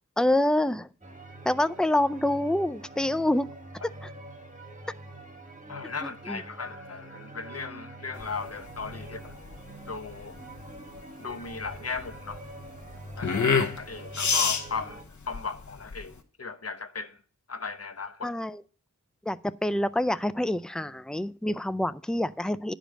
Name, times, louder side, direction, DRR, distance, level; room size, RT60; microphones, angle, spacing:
voice 1, 0.2-0.9 1.5-3.5 4.0-4.1 6.0-6.4 18.2-18.6 19.3-22.7, left 1 dB, ahead, 0.4 m, -26 dB
sound 1, 1.0-15.0, right 1 dB, 25° right, 1.5 m, -45 dB
voice 2, 5.7-9.3 9.9-10.3 11.2-12.4 13.2-15.0 15.3-17.2 17.5-18.3, left 4 dB, 50° left, 0.9 m, -37 dB
sound 2, 8.2-16.2, left 5 dB, 65° left, 1.1 m, -30 dB
10.0 x 5.1 x 6.3 m
wide cardioid pair, 80°, 32 cm